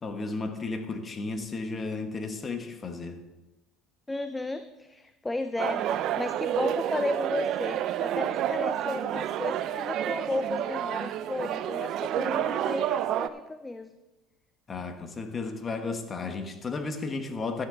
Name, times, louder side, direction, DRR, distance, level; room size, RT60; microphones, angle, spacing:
voice 1, 0.0-3.2 14.7-17.6, left 3 dB, 30° left, 6 dB, 1.4 m, -33 dB
voice 2, 4.1-13.9, left 2 dB, 10° left, 10 dB, 0.5 m, -34 dB
sound 1, 5.6-13.3, right 11 dB, 60° right, 0.5 m, -29 dB
12.5 x 10.0 x 3.8 m, 1.0 s
supercardioid pair, 105°, 0 cm